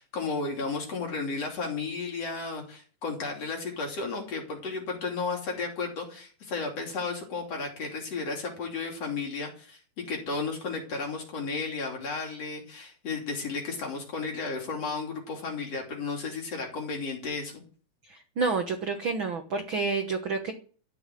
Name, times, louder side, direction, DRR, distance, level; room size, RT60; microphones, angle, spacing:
voice 1, 0.0-17.6, left 4 dB, 45° left, 1 dB, 3.9 m, -33 dB
voice 2, 18.1-20.5, right 4 dB, 70° right, 5 dB, 1.2 m, -29 dB
13.5 x 7.1 x 9.2 m, 0.43 s
omnidirectional pair, 4.1 m